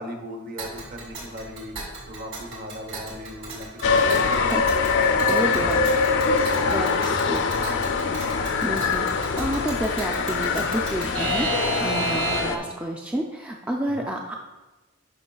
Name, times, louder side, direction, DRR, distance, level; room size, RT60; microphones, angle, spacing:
voice 1, 0.0-4.7 6.5-6.7 12.0-12.3 13.9-14.1, equal, 45° right, 2 dB, 0.9 m, -40 dB
Alarm / Clock, 0.6-12.7, right 3 dB, 70° right, 2.2 m, -34 dB
sound 1, 3.8-12.6, left 4 dB, 60° left, 0.4 m, -23 dB
voice 2, 4.5-5.8 6.7-7.5 8.3-14.4, right 1 dB, 5° right, 0 dB, 0.3 m, -30 dB
11.5 x 5.1 x 2.3 m, 1.1 s
head